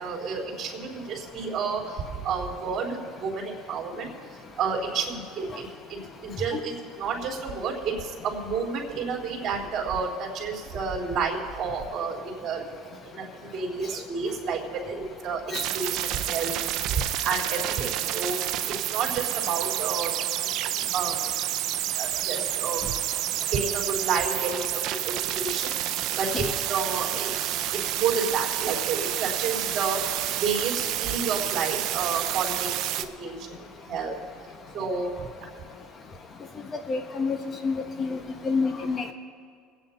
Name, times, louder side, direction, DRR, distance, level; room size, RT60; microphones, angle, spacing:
voice 1, 0.0-4.1 4.6-12.6 13.0-15.0 15.2-20.2 20.9-21.2 21.9-22.9 23.5-25.7 26.2-27.5 27.9-30.0 30.4-32.9 33.2-33.6 33.9-34.2 34.7-35.5, right 5 dB, 40° right, -3 dB, 3.8 m, -30 dB
sound 1, 15.5-33.1, right 13 dB, 60° right, 0.7 m, -29 dB
voice 2, 36.9-37.4 37.6-39.0, left 4 dB, 35° left, 6 dB, 1.3 m, -28 dB
24.5 x 9.0 x 4.4 m, 2.1 s
supercardioid pair, 120°, 0 cm